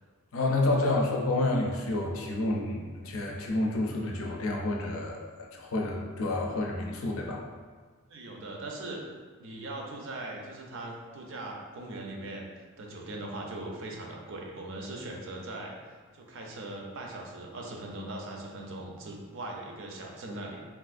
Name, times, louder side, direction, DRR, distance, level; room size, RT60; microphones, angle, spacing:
voice 1, 0.3-5.2 5.5-7.4, left 2 dB, 65° left, -1 dB, 0.5 m, -29 dB
voice 2, 8.1-9.0 9.4-12.5 12.8-20.6, right 2 dB, 60° right, 0 dB, 0.5 m, -40 dB
3.5 x 2.5 x 2.4 m, 1.5 s
head